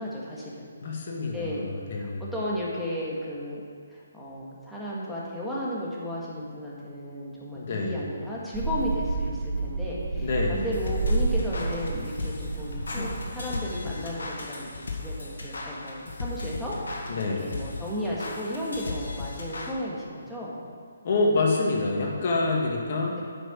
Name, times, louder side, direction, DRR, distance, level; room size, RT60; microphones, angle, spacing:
voice 1, 0.0-0.7 1.3-1.6 1.9-3.6 3.9-17.1 17.4-20.6 23.1-23.2, equal, ahead, -8 dB, 1.8 m, -34 dB
voice 2, 0.8-2.2 7.5-7.9 10.2-10.6 17.1-17.5 21.0-23.2, left 3 dB, 50° left, -1 dB, 1.8 m, -27 dB
sound 1, 8.5-13.5, right 3 dB, 25° right, 2.2 m, -30 dB
sound 2, 10.5-19.7, left 3 dB, 75° left, 1.7 m, -36 dB
9.0 x 6.0 x 6.3 m, 2.2 s
hypercardioid pair, 155°, 0 cm